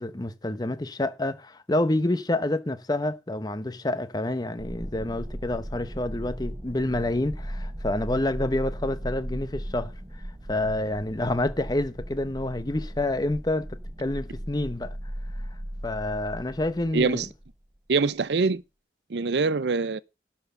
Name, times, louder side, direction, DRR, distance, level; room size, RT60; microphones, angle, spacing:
voice 1, 0.0-9.9 10.5-15.0 15.8-17.2, left 1 dB, 20° left, 0.8 m, -28 dB
sound 1, 4.6-17.5, equal, 20° right, 0.9 m, -37 dB
voice 2, 16.9-17.3 17.9-18.6 19.1-20.0, right 4 dB, 75° right, 0.6 m, -24 dB
12.0 x 4.4 x 6.8 m
head